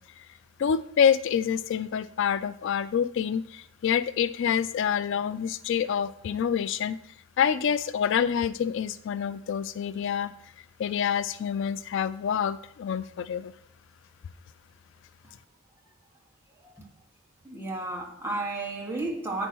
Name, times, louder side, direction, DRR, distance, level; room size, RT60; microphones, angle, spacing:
voice 1, 0.6-7.0 7.4-10.3 10.8-13.5, left 8 dB, 60° left, 0.3 m, -27 dB
voice 2, 17.4-19.5, right 2 dB, 10° right, 1.5 m, -33 dB
9.1 x 4.3 x 6.1 m
head